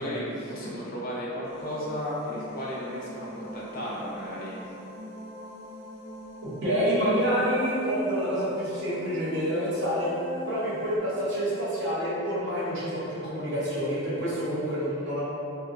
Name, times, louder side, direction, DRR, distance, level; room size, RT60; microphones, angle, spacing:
voice 1, 0.0-4.6, equal, 40° left, -6 dB, 0.4 m, -34 dB
sound 1, 1.4-11.0, left 1 dB, 90° right, 0.6 m, -43 dB
voice 2, 6.6-10.1 10.5-15.2, equal, 55° right, -9 dB, 0.8 m, -27 dB
2.8 x 2.1 x 2.5 m, 2.6 s
head